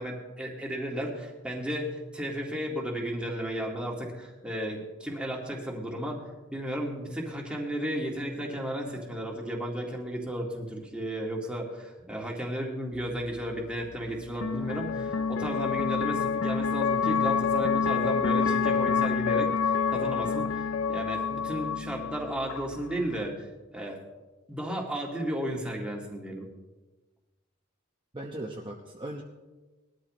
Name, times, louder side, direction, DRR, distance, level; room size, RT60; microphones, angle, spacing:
voice 1, 0.0-6.2 6.5-24.0 24.5-26.5, equal, 5° right, -1 dB, 2.0 m, -34 dB
sound 1, 12.9-23.3, left 6 dB, 70° left, 0.6 m, -28 dB
voice 2, 28.1-29.2, right 1 dB, 25° right, -2 dB, 1.0 m, -38 dB
20.5 x 13.0 x 3.1 m, 1.2 s
head